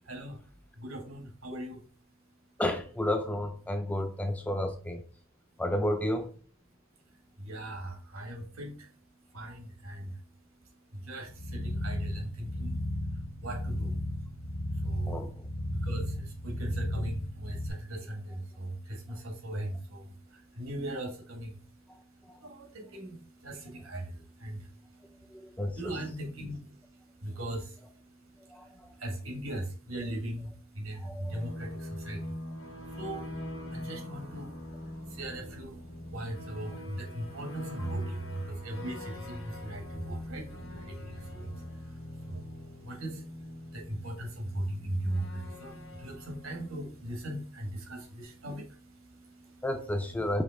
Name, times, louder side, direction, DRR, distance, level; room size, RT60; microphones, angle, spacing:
voice 1, 0.0-0.4 0.8-1.8 7.4-8.9 9.3-10.2 10.9-12.8 13.4-14.0 14.7-15.3 15.7-49.6, right 1 dB, 75° right, 1.4 m, -39 dB
voice 2, 2.6-5.0 5.6-6.3 15.1-15.5 22.3-22.4 25.3-25.9 28.5-28.7 31.0-31.4 49.6-50.4, left 1 dB, 5° left, 0.3 m, -31 dB
sound 1, 11.3-17.7, left 1 dB, 85° left, 1.2 m, -34 dB
sound 2, 31.1-47.7, left 1 dB, 70° left, 1.5 m, -43 dB
5.1 x 3.0 x 3.4 m
head